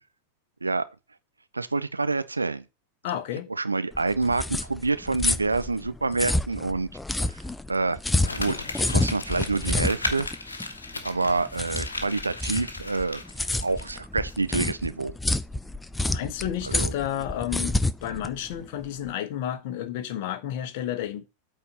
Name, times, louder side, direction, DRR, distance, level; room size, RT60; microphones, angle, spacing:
voice 1, 1.5-2.6 3.5-6.9 7.3-7.4 7.7-8.0 8.3-8.6 8.9-10.3 11.0-13.2 13.6-15.1 16.6-16.9, right 3 dB, 80° right, 0.6 m, -27 dB
voice 2, 3.0-3.5 16.1-21.2, left 11 dB, 50° left, 1.2 m, -31 dB
sound 1, 3.9-19.1, left 2 dB, 5° left, 0.5 m, -29 dB
Crumpling crinkling, 8.2-14.0 14.3-14.4, left 3 dB, 75° left, 1.3 m, -36 dB
8.5 x 4.4 x 6.5 m
figure-of-eight pair, 90°, 0 cm